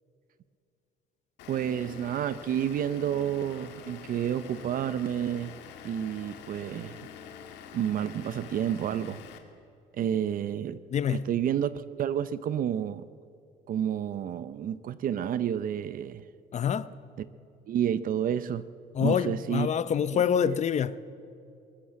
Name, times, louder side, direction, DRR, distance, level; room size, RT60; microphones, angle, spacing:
Vehicle / Engine, 1.4-9.4, left 8 dB, 90° left, 2.1 m, -46 dB
voice 1, 1.5-5.6 5.8-7.0 7.7-9.2 10.0-10.8 11.1-13.0 13.7-16.3 17.2-17.3 17.7-18.7 19.0-19.7 20.5-20.6, right 9 dB, 55° right, 0.7 m, -30 dB
voice 2, 10.9-11.3 16.5-16.9 18.9-21.0, left 8 dB, 45° left, 0.8 m, -26 dB
22.0 x 18.5 x 7.7 m
cardioid pair, 110°, 17 cm